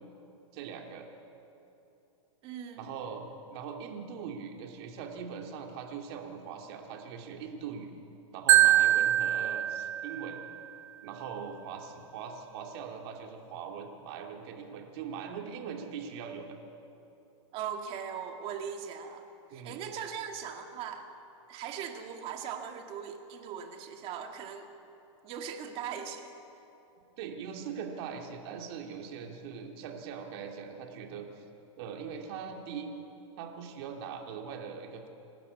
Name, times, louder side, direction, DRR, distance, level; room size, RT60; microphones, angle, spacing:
voice 1, 0.5-1.1 2.8-7.9 8.3-10.4 11.0-16.6 19.5-19.8 27.2-31.4 31.8-32.9 33.4-35.1, right 6 dB, 50° right, 2 dB, 2.8 m, -41 dB
voice 2, 2.4-2.9 17.5-19.2 19.5-21.1 21.5-24.7 25.2-26.3, right 8 dB, 35° right, 4 dB, 2.1 m, -39 dB
Marimba xylophone, 8.5-10.6, right 13 dB, 75° right, 0.5 m, -24 dB
28.5 x 12.5 x 8.4 m, 2.9 s
supercardioid pair, 145°, 17 cm